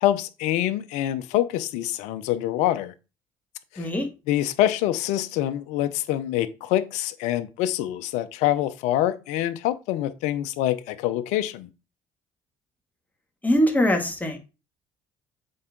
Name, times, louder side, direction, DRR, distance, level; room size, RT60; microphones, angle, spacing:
voice 1, 0.0-2.9 3.7-3.9 4.3-11.7, left 13 dB, 80° left, 0.7 m, -25 dB
voice 2, 3.8-4.1 13.4-14.4, equal, 15° left, 2.4 m, -22 dB
7.7 x 4.8 x 3.8 m
supercardioid pair, 70°, 12 cm